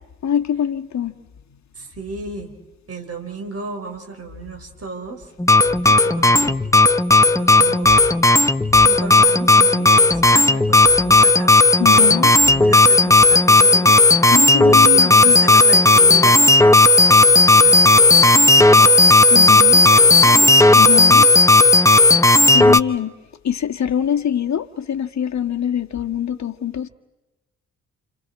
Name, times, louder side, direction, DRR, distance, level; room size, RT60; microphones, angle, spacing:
voice 1, 0.2-1.1 5.7-6.2 7.3-7.6 7.9-8.8 11.8-12.3 14.3-15.4 19.3-19.8 20.8-21.3 22.5-23.1 23.4-26.9, left 9 dB, 45° left, 1.6 m, -24 dB
voice 2, 1.8-2.5 2.9-5.3 5.6-6.6 7.1-8.0 8.8-14.1 14.7-16.5 17.0-20.6, right 4 dB, 40° right, 4.1 m, -34 dB
sound 1, 5.4-22.8, left 2 dB, 10° left, 0.8 m, -12 dB
29.5 x 28.5 x 4.3 m
hypercardioid pair, 50°, 37 cm